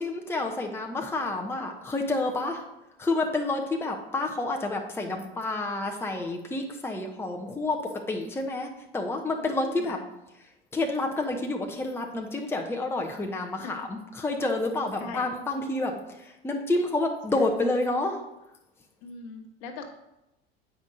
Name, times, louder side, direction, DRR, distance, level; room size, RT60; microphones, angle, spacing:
voice 1, 0.0-2.7 3.0-7.8 8.1-10.0 10.7-18.2, left 2 dB, 10° left, 2 dB, 0.8 m, -29 dB
voice 2, 9.4-10.0 13.6-13.8 15.0-15.3 17.3-17.4 19.0-19.9, left 4 dB, 55° left, 4 dB, 1.3 m, -41 dB
8.3 x 5.3 x 3.9 m, 0.92 s
figure-of-eight pair, 70°, 30 cm